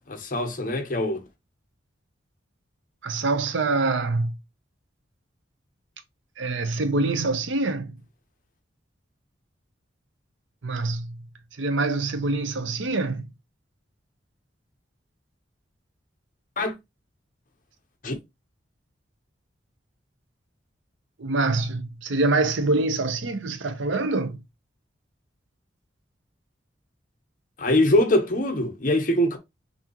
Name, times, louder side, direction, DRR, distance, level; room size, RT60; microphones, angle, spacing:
voice 1, 0.1-1.2 16.6-16.7 18.0-18.1 27.6-29.4, left 1 dB, 45° left, 0.9 m, -23 dB
voice 2, 3.0-4.4 6.4-8.0 10.6-11.2 11.6-13.3 21.2-24.4, right 3 dB, 80° right, 0.7 m, -25 dB
5.9 x 2.7 x 2.9 m
head